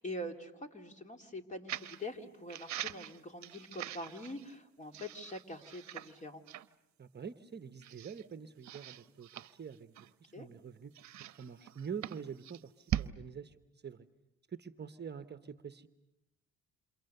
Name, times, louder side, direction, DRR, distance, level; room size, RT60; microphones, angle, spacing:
voice 1, 0.0-6.4 10.3-10.5, left 1 dB, 25° left, 5 dB, 2.9 m, -44 dB
sound 1, 1.7-2.0 2.5-4.5 4.9-6.2 6.5-6.7 7.2-7.3 7.8-8.2 8.6-10.3 10.9-13.1, right 12 dB, 65° right, 0.9 m, -42 dB
voice 2, 7.0-11.0 11.4-13.6 13.8-14.1 14.5-15.9, right 7 dB, 35° right, 10 dB, 1.1 m, -46 dB
28.5 x 27.5 x 6.8 m, 0.91 s
cardioid pair, 90°, 30 cm